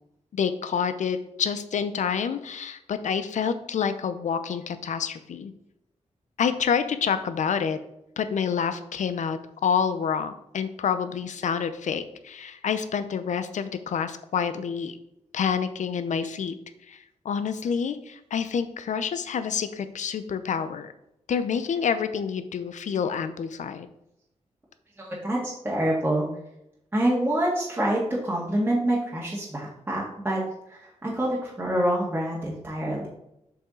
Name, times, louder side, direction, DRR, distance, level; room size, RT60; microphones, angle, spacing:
voice 1, 0.3-5.5 6.4-7.8 8.2-15.0 15.3-16.5 16.9-17.0 17.2-20.9 21.3-23.9, left 7 dB, 80° left, 11 dB, 0.7 m, -28 dB
voice 2, 25.0-26.2 26.9-30.4 30.7-33.1, right 1 dB, 15° right, -5 dB, 1.7 m, -26 dB
7.0 x 5.7 x 3.8 m, 0.82 s
wide cardioid pair, 120°, 12 cm